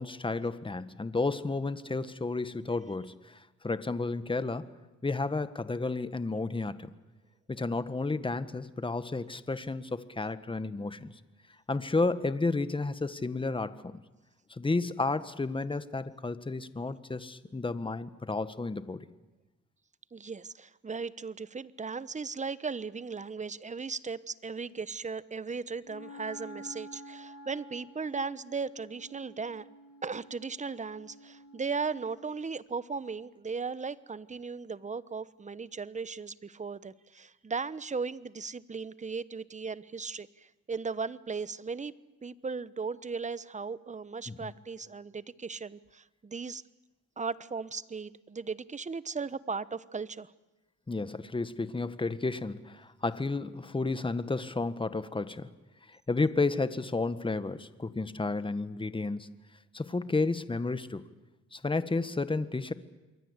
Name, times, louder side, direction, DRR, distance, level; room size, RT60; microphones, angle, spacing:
voice 1, 0.0-4.7 5.0-6.9 7.5-11.1 11.7-13.9 14.5-19.1 44.3-44.5 50.9-55.5 55.9-59.3 59.7-61.0 61.5-62.7, left 3 dB, 15° left, 12 dB, 1.6 m, -32 dB
voice 2, 20.1-29.7 30.0-41.9 42.2-46.6 47.2-50.3, right 5 dB, 25° right, 17 dB, 1.0 m, -37 dB
Wind instrument woodwind instrument, 25.8-32.5, equal, 55° left, 2.3 m, -50 dB
27.5 x 23.0 x 8.3 m, 1.1 s
cardioid pair, 90°, 30 cm